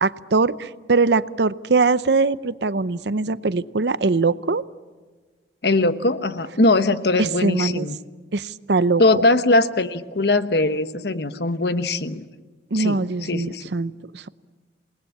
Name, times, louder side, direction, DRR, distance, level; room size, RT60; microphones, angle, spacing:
voice 1, 0.0-4.6 7.2-7.9 8.3-9.0 12.7-14.3, right 3 dB, 75° right, 16 dB, 0.7 m, -22 dB
voice 2, 5.6-8.0 9.0-12.3 12.7-13.7, left 2 dB, 70° left, 11 dB, 1.1 m, -21 dB
28.5 x 19.5 x 8.6 m, 1.4 s
head